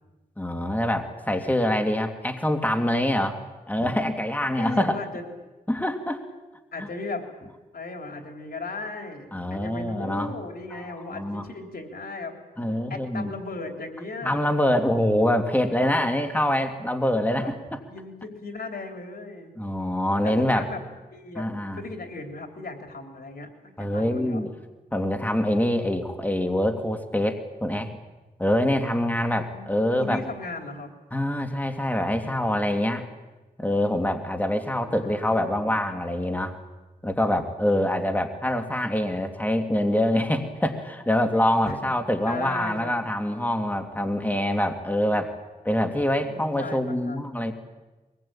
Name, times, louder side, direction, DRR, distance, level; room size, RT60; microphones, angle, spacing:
voice 1, 0.4-3.4 3.7-5.0 5.7-6.2 6.8-6.9 9.3-10.3 10.7-11.4 12.6-13.3 14.2-17.8 19.6-20.6 21.4-21.8 23.8-24.5 24.9-27.9 28.4-30.2 31.1-33.0 33.6-36.6 37.0-45.3 45.6-47.5, left 1 dB, 10° left, 5 dB, 2.6 m, -25 dB
voice 2, 3.8-4.1 4.5-5.2 6.7-7.3 7.7-12.4 12.9-14.4 17.4-17.5 17.9-19.5 20.2-20.8 21.1-21.5 21.7-24.4 29.3-30.9 34.8-35.7 41.7-41.8 42.3-43.0 46.2-47.3, left 3 dB, 80° left, 3 dB, 3.6 m, -37 dB
23.0 x 21.0 x 8.9 m, 1.1 s
wide cardioid pair, 65°, 16 cm